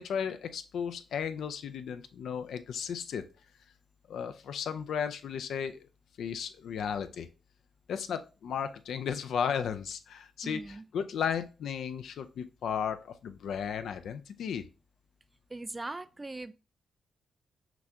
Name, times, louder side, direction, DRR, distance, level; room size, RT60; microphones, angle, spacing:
voice 1, 0.0-3.2 4.1-5.8 6.2-7.3 7.9-14.6, left 7 dB, 70° left, 0.4 m, -34 dB
voice 2, 10.4-10.8 15.5-16.5, right 2 dB, 25° right, 0.4 m, -40 dB
5.9 x 2.3 x 2.7 m
supercardioid pair, 45°, 0 cm